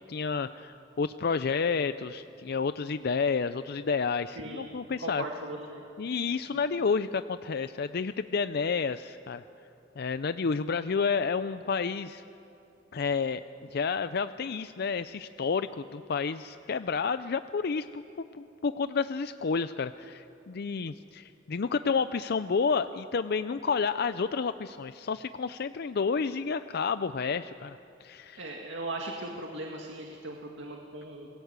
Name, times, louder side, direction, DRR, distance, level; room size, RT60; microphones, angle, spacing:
voice 1, 0.1-5.2 6.0-9.4 10.0-12.2 12.9-13.4 13.7-28.4, left 5 dB, 55° left, 12 dB, 0.5 m, -30 dB
voice 2, 4.4-4.7 5.0-5.8 6.5-6.6 28.4-31.3, right 2 dB, 70° right, 0 dB, 2.1 m, -38 dB
28.0 x 21.0 x 8.1 m, 2.8 s
head